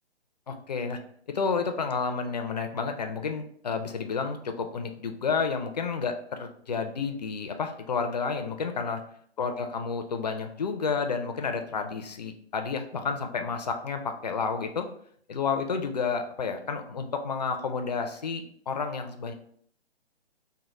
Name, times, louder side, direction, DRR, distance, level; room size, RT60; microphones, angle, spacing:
voice 1, 0.5-1.0 1.3-9.0 9.4-14.9 15.3-19.3, left 5 dB, 40° left, 6 dB, 0.4 m, -30 dB
3.1 x 2.1 x 4.0 m, 0.63 s
figure-of-eight pair, 145°, 33 cm